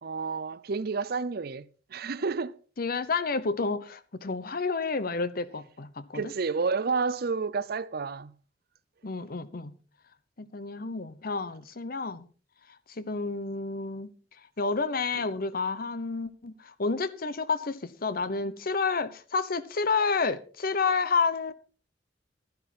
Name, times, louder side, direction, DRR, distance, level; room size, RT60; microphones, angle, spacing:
voice 1, 0.0-2.6 6.1-8.3 15.1-15.3, right 4 dB, 60° right, 0.6 m, -30 dB
voice 2, 2.8-6.3 9.0-9.8 10.4-12.3 12.9-14.1 14.6-21.5, left 4 dB, 55° left, 0.9 m, -30 dB
12.5 x 11.0 x 4.2 m
head